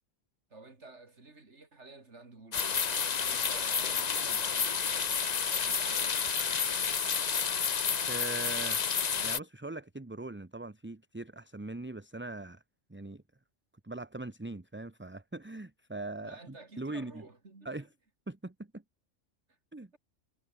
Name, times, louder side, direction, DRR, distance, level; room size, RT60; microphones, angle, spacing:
voice 1, 0.5-6.9 16.2-17.9 19.5-19.6, right 3 dB, 60° right, 3.4 m, -53 dB
sound 1, 2.5-9.4, left 6 dB, 40° left, 0.8 m, -30 dB
voice 2, 8.1-8.8 9.2-12.6 12.9-13.2 13.8-16.4 16.8-17.1 17.6-17.9 18.3-18.8 19.7-19.9, right 2 dB, 10° right, 0.8 m, -41 dB
omnidirectional pair, 1.3 m